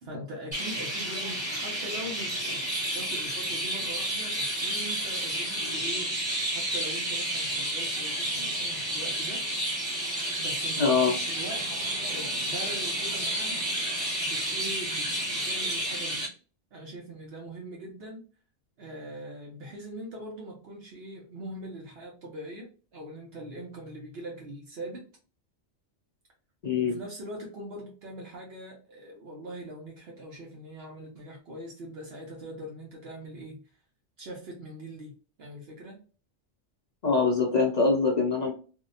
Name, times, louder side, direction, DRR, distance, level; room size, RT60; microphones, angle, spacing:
voice 1, 0.0-2.6 2.9-9.4 10.4-11.7 12.1-13.6 14.2-16.3 16.7-18.2 18.8-25.0 26.8-33.6 34.2-36.0, right 1 dB, 60° right, 0.9 m, -42 dB
Chirp tweet, 0.5-16.3, right 1 dB, 25° right, 1.4 m, -31 dB
voice 2, 10.8-11.1 26.6-27.0 37.0-38.5, left 4 dB, 50° left, 0.5 m, -23 dB
2.7 x 2.1 x 2.5 m
omnidirectional pair, 1.2 m